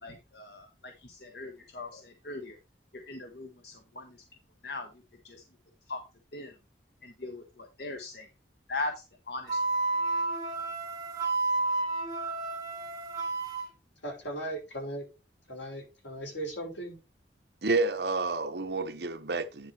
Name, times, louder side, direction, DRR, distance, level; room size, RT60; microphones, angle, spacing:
voice 1, 0.0-2.6 2.9-4.2 4.6-4.9 5.2-5.4 5.9-6.0 6.3-6.5 7.0-8.3 8.7-9.6, left 2 dB, 60° left, 1.1 m, -39 dB
Wind instrument woodwind instrument, 9.5-13.7, right 3 dB, 20° right, 2.5 m, -31 dB
voice 2, 14.0-15.1 15.5-17.0, right 1 dB, 80° left, 5.3 m, -37 dB
voice 3, 17.6-19.7, right 3 dB, 65° right, 1.0 m, -29 dB
10.5 x 4.7 x 4.4 m
head